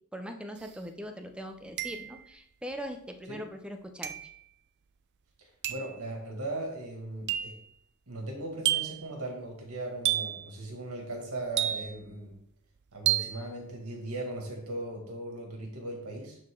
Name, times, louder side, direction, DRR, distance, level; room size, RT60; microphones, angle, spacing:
voice 1, 0.1-4.3, equal, 5° right, 5 dB, 0.6 m, -41 dB
sound 1, 0.6-0.7 1.8-2.3 4.0-4.4 5.6-6.0 7.3-7.6 8.6-9.1 10.0-10.5 11.6-12.1 13.1-13.4, right 13 dB, 50° right, 0.5 m, -30 dB
voice 2, 5.7-7.5 8.1-12.3 12.9-16.4, right 1 dB, 80° right, 1 dB, 2.2 m, -38 dB
11.0 x 3.9 x 3.8 m, 0.71 s
head